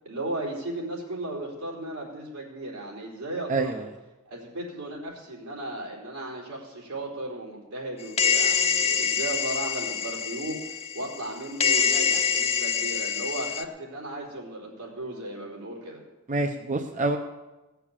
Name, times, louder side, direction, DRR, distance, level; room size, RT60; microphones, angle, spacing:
voice 1, 0.0-3.8 4.3-16.0, right 1 dB, 85° right, -2 dB, 4.2 m, -35 dB
voice 2, 3.5-3.8 16.3-17.2, right 2 dB, 35° right, 5 dB, 0.7 m, -26 dB
sound 1, 8.2-11.3 11.6-13.6, left 6 dB, 30° left, 0.7 m, -25 dB
18.0 x 6.9 x 7.4 m, 1.1 s
head